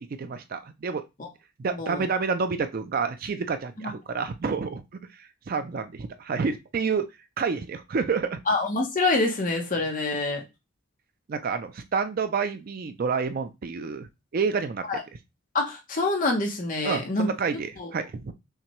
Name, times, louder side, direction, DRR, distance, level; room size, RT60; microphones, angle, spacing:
voice 1, 0.2-1.0 1.6-4.8 5.5-7.1 7.4-8.4 11.3-14.1 14.3-14.8 16.8-18.3, right 5 dB, 45° right, 9 dB, 0.4 m, -28 dB
voice 2, 1.7-2.0 8.5-10.4 14.9-15.0 15.5-17.3 17.8-17.9, left 2 dB, 40° left, 2 dB, 0.9 m, -26 dB
5.6 x 2.2 x 3.0 m, 0.24 s
head